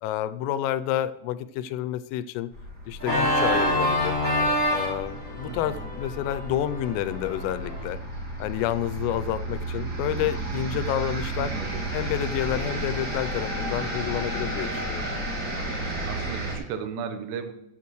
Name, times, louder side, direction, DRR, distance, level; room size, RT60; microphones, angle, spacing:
voice 1, 0.0-2.5 2.9-4.2 4.7-8.0 8.4-11.5 11.9-15.1, left 11 dB, 90° left, 13 dB, 3.2 m, -29 dB
sound 1, 2.5-16.6, right 1 dB, 50° right, 1.1 m, -33 dB
Organ, 3.0-7.8, left 1 dB, 25° right, 2.3 m, -27 dB
voice 2, 5.5-5.9 11.4-11.8 15.5-17.5, right 7 dB, 85° right, 8 dB, 3.5 m, -36 dB
14.0 x 8.7 x 3.1 m, 0.85 s
omnidirectional pair, 5.8 m